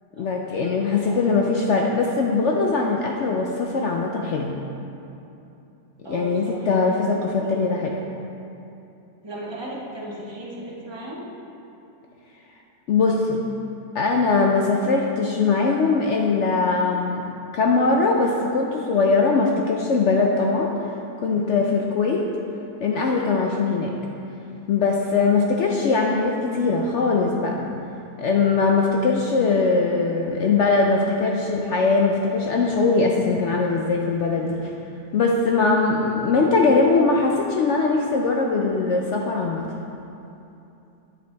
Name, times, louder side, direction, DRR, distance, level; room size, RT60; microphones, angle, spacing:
voice 1, 0.2-4.5 6.1-7.9 12.9-13.4 13.9-17.2 17.5-20.7 21.2-22.3 22.8-23.9 24.7-27.7 28.2-34.7 35.1-39.6, left 4 dB, 65° left, 0 dB, 0.7 m, -21 dB
voice 2, 1.0-1.3 6.0-6.7 7.4-8.1 9.2-11.2, right 1 dB, 20° right, -6 dB, 1.3 m, -36 dB
8.7 x 7.8 x 3.3 m, 2.8 s
omnidirectional pair, 1.7 m